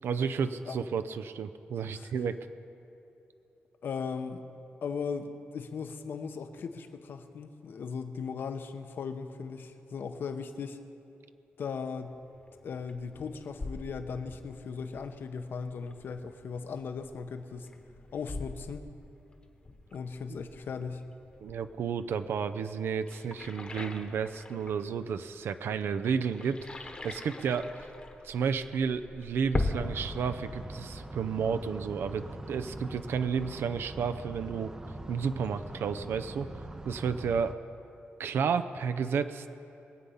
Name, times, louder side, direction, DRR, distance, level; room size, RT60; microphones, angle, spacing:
voice 1, 0.0-2.5 21.4-27.7 28.2-34.7 35.1-36.5 36.8-37.6 38.2-39.5, right 6 dB, 70° right, 10 dB, 0.6 m, -32 dB
voice 2, 3.8-4.4 4.8-10.8 11.6-12.2 12.6-17.7 18.1-18.8 19.9-21.0, left 5 dB, 60° left, 8 dB, 0.9 m, -38 dB
sound 1, 12.1-29.9, left 2 dB, 25° left, 1.2 m, -41 dB
sound 2, 29.8-37.5, right 1 dB, 15° right, 0.6 m, -43 dB
23.5 x 8.4 x 5.6 m, 2.8 s
wide cardioid pair, 140°, 4 cm